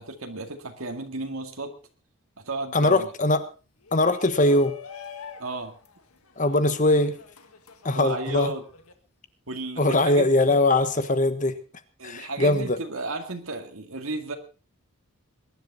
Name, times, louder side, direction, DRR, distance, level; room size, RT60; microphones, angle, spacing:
voice 1, 0.0-1.8 2.4-3.1 5.4-5.7 7.9-8.7 9.5-10.6 12.0-14.3, right 2 dB, 65° right, 4 dB, 2.2 m, -33 dB
voice 2, 2.7-3.5 3.9-4.8 6.4-7.2 7.8-8.5 9.8-11.6 12.0-12.8, left 2 dB, 35° left, 11 dB, 1.3 m, -21 dB
Shout, 3.8-8.9, left 6 dB, 80° left, 2.0 m, -45 dB
22.0 x 11.0 x 4.1 m, 0.34 s
head